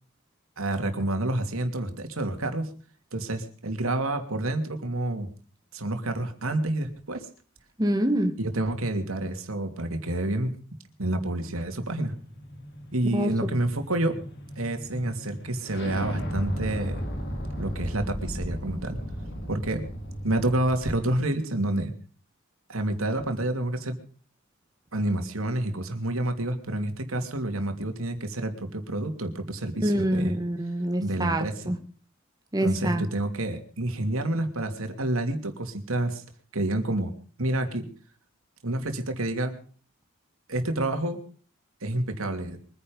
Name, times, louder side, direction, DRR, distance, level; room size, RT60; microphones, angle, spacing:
voice 1, 0.6-2.7 3.1-5.3 5.7-7.3 8.4-10.5 11.0-12.1 12.9-14.2 14.6-17.0 17.6-19.0 19.5-19.8 20.2-21.9 22.7-24.0 24.9-30.3 31.0-31.7 32.6-36.2 36.5-37.1 37.4-37.9 38.6-39.5 40.5-41.2 41.8-42.6, right 1 dB, 85° right, 6 dB, 2.9 m, -28 dB
voice 2, 7.8-8.3 13.1-13.3 29.8-31.8 32.5-33.0, right 1 dB, 20° right, 5 dB, 1.7 m, -26 dB
sound 1, 11.5-21.2, equal, 55° left, 3.7 m, -36 dB
23.5 x 10.0 x 5.4 m, 0.43 s
head